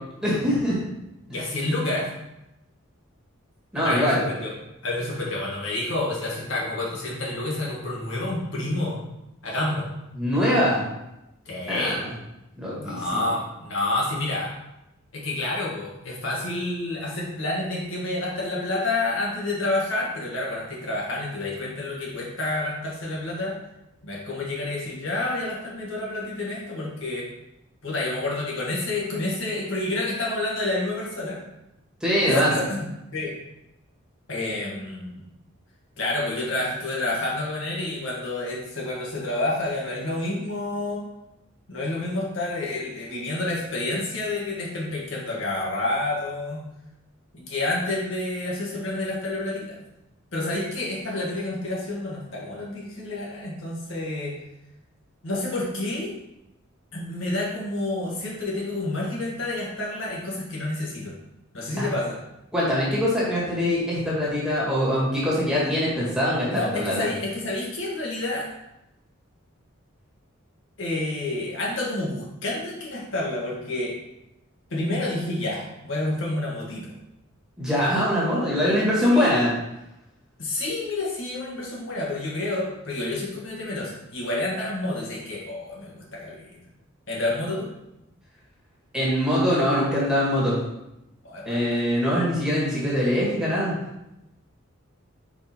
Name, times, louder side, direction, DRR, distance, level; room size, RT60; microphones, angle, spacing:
voice 1, 0.2-0.8 3.7-4.2 10.1-10.8 11.7-12.1 12.6-13.3 32.0-32.5 61.7-61.9 62.5-67.1 77.6-79.5 88.9-90.6 91.5-93.7, equal, 5° right, -7 dB, 1.8 m, -23 dB
voice 2, 1.3-2.1 3.7-4.5 4.8-9.0 9.4-9.9 11.4-12.0 12.8-14.5 15.1-23.6 24.0-27.3 27.8-31.4 32.2-32.9 33.1-33.3 34.3-35.2 36.0-41.1 41.7-46.6 47.3-49.8 50.3-54.3 55.2-56.1 56.9-61.1 61.5-62.2 66.5-68.5 70.8-74.0 74.7-76.9 78.7-78.8 79.1-79.4 80.4-86.6 87.1-87.7 91.2-91.6, left 2 dB, 65° left, -4 dB, 1.6 m, -29 dB
4.9 x 4.9 x 4.4 m, 0.90 s
head